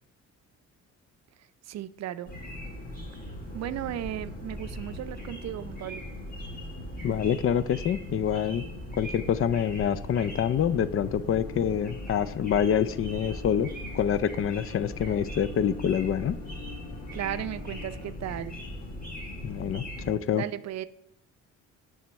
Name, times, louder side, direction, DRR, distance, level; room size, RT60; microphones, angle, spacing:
voice 1, 1.7-2.3 3.5-6.0 17.1-18.6 20.3-20.8, right 12 dB, 60° right, 13 dB, 0.5 m, -35 dB
sound 1, 2.2-20.2, left 1 dB, 30° left, 2.3 m, -39 dB
voice 2, 7.0-8.7 9.0-13.7 13.9-16.4 19.4-20.4, left 8 dB, 45° left, 15 dB, 0.4 m, -26 dB
sound 2, 9.4-18.1, left 14 dB, 80° left, 0.8 m, -48 dB
7.3 x 3.5 x 6.2 m, 0.75 s
cardioid pair, 90°, 30 cm